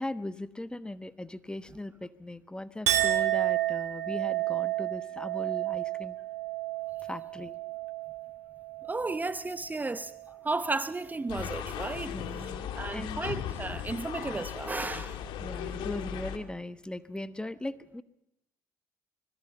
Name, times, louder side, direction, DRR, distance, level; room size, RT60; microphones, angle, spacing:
voice 1, 0.0-6.2 7.0-7.6 12.0-13.2 15.4-18.0, left 1 dB, 10° left, 1.1 m, -39 dB
Chink clink, 2.9-9.4 9.8-10.4, right 14 dB, 85° right, 2.1 m, -31 dB
voice 2, 8.9-10.1 10.4-12.1 12.8-15.2, right 3 dB, 20° right, 0.9 m, -33 dB
sound 1, 11.3-16.4, left 9 dB, 65° left, 2.0 m, -37 dB
25.5 x 21.0 x 5.6 m
hypercardioid pair, 55°, 9 cm